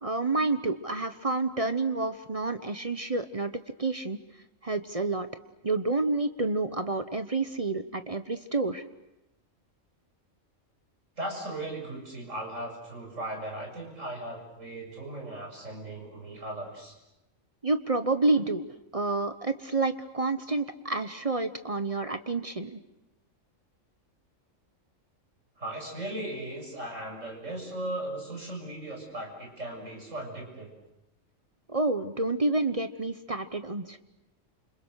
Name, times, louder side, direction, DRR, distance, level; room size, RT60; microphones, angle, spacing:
voice 1, 0.0-3.5 3.8-4.2 4.6-5.3 5.6-8.8 17.6-18.7 18.9-22.8 31.7-34.0, right 3 dB, 30° right, 9 dB, 1.0 m, -29 dB
voice 2, 11.2-16.9 25.6-30.7, right 1 dB, 65° right, 1 dB, 7.4 m, -37 dB
29.5 x 27.0 x 6.5 m, 0.93 s
omnidirectional pair, 1.4 m